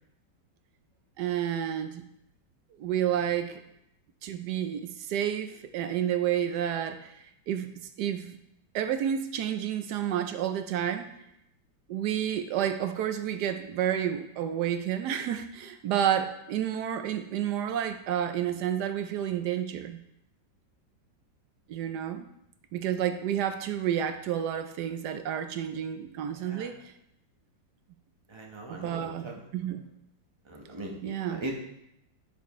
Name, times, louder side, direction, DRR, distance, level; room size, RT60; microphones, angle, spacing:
voice 1, 1.2-2.0 2.8-3.6 4.2-8.4 8.7-11.1 11.9-20.0 21.7-22.3 22.7-26.9 28.7-29.8 31.0-31.4, right 10 dB, 70° right, 8 dB, 1.1 m, -30 dB
voice 2, 26.3-26.7 28.3-29.4 30.4-31.5, right 1 dB, 20° right, -1 dB, 0.8 m, -40 dB
9.2 x 6.7 x 3.1 m, 0.80 s
omnidirectional pair, 2.0 m